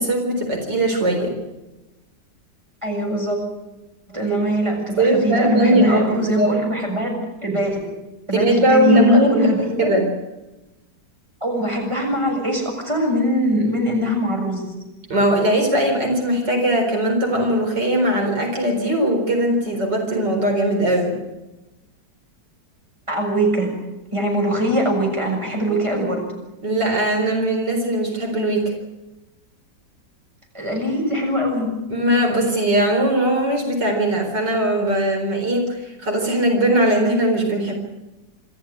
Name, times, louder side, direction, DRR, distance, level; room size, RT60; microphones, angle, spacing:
voice 1, 0.0-1.4 4.3-4.4 5.0-6.5 8.3-9.5 9.8-10.1 15.1-21.2 25.9-26.2 26.6-28.7 31.9-37.7, right 1 dB, 80° right, 3 dB, 4.9 m, -19 dB
voice 2, 2.8-3.4 4.1-7.1 7.4-7.8 8.3-9.9 11.4-14.7 23.1-23.7 24.1-26.2 30.5-31.7, right 1 dB, 15° right, 1 dB, 6.8 m, -22 dB
27.0 x 14.0 x 9.7 m, 1.0 s
omnidirectional pair, 1.9 m